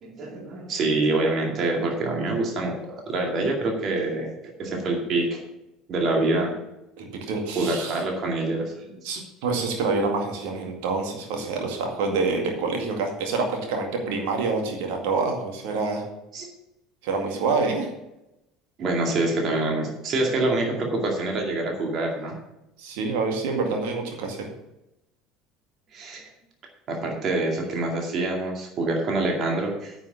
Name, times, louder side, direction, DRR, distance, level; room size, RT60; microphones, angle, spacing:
voice 1, 0.0-2.8 3.1-4.3 4.6-5.4 5.9-6.6 7.6-9.0 16.3-16.5 18.8-22.4 25.9-26.2 26.9-29.9, right 2 dB, 40° right, 1 dB, 2.3 m, -26 dB
voice 2, 7.0-8.0 9.0-16.0 17.0-17.9 22.8-24.5, right 4 dB, 60° right, 2 dB, 2.1 m, -27 dB
9.4 x 6.2 x 7.1 m, 0.90 s
figure-of-eight pair, 65°, 0 cm